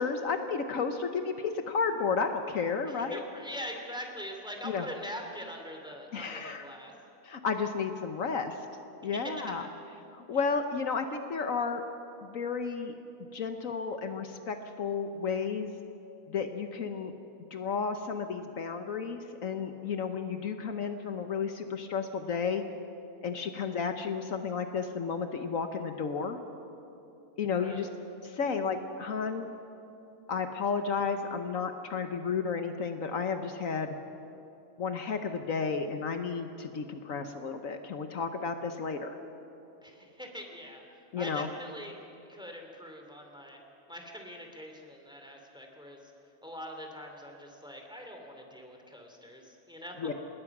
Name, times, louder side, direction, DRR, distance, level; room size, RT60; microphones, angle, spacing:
voice 1, 0.0-3.2 4.6-4.9 6.1-6.7 7.2-8.6 9.0-9.6 10.1-11.8 12.2-12.9 13.3-15.7 16.3-17.1 17.5-22.6 23.2-26.4 27.4-27.9 28.2-29.5 30.3-33.9 34.8-39.2 41.1-41.5 50.0-50.1, left 5 dB, 65° left, 7 dB, 1.4 m, -32 dB
voice 2, 2.9-6.9 9.1-9.7 10.3-10.4 27.6-27.9 39.8-40.8 41.2-42.0 42.3-43.6 43.9-46.1 46.4-50.1, equal, 5° right, 2 dB, 2.7 m, -43 dB
27.0 x 20.5 x 6.0 m, 3.0 s
omnidirectional pair, 1.5 m